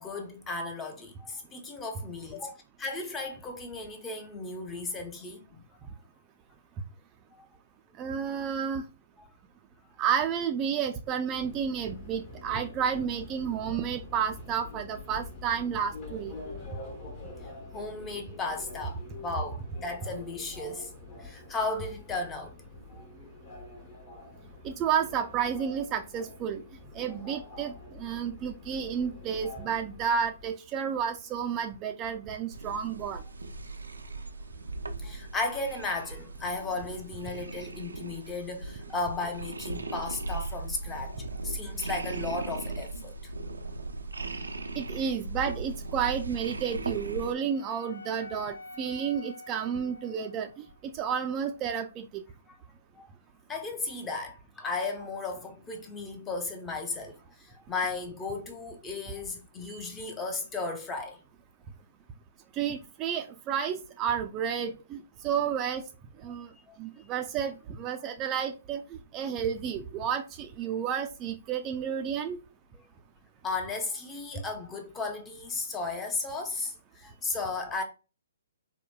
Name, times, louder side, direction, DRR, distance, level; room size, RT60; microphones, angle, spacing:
voice 1, 0.0-2.5 2.8-5.6 7.3-7.4 9.2-9.3 17.7-20.9 21.2-22.5 22.9-23.0 35.0-41.1 41.4-43.1 52.5-52.6 53.0-53.1 53.5-61.2 66.3-66.4 66.7-66.8 72.7-72.8 73.4-77.8, left 3 dB, 15° left, 0.7 m, -35 dB
voice 2, 8.0-8.8 10.0-16.3 24.6-26.6 26.9-33.2 44.8-50.5 50.8-52.2 62.5-65.8 66.2-66.5 66.8-72.4, right 7 dB, 25° right, 0.4 m, -31 dB
Subway metro underground, 11.3-30.6, left 3 dB, 35° left, 1.0 m, -46 dB
sound 1, 32.5-47.3, right 3 dB, 90° right, 0.4 m, -38 dB
Wind instrument woodwind instrument, 46.6-50.8, left 2 dB, 80° left, 0.5 m, -48 dB
3.9 x 2.1 x 2.2 m
figure-of-eight pair, 130°, 0 cm